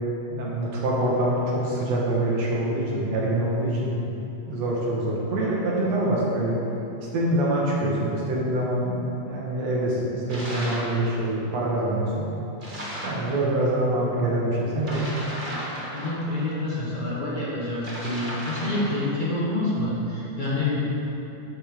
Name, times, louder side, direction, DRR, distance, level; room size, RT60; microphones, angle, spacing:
voice 1, 0.3-3.9 4.5-6.6 7.0-12.2 13.0-15.0, right 1 dB, 65° right, -4 dB, 2.8 m, -25 dB
sound 1, 10.3-11.0 12.6-13.3 14.8-16.5 17.7-19.1, equal, 30° right, 1.0 m, -34 dB
voice 2, 15.9-20.8, left 2 dB, 75° left, -8 dB, 0.4 m, -27 dB
11.5 x 8.1 x 3.7 m, 3.0 s
omnidirectional pair, 3.3 m